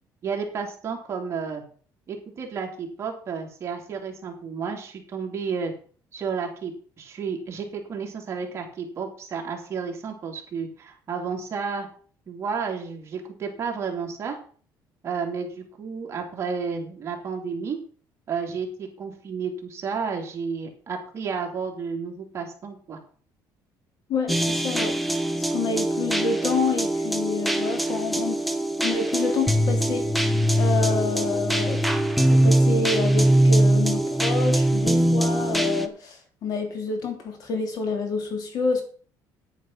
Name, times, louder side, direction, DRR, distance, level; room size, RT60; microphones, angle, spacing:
voice 1, 0.2-1.6 2.1-5.7 6.1-11.9 12.3-14.4 15.0-17.8 18.3-23.0, right 5 dB, 35° right, 1 dB, 2.8 m, -31 dB
voice 2, 24.1-25.0 25.3-28.4 28.8-30.1 30.5-31.9 32.3-38.8, left 4 dB, 55° left, 5 dB, 3.0 m, -28 dB
sound 1, 24.3-35.9, right 1 dB, ahead, 0.9 m, -22 dB
9.8 x 9.4 x 5.5 m, 0.43 s
cardioid pair, 150°, 8 cm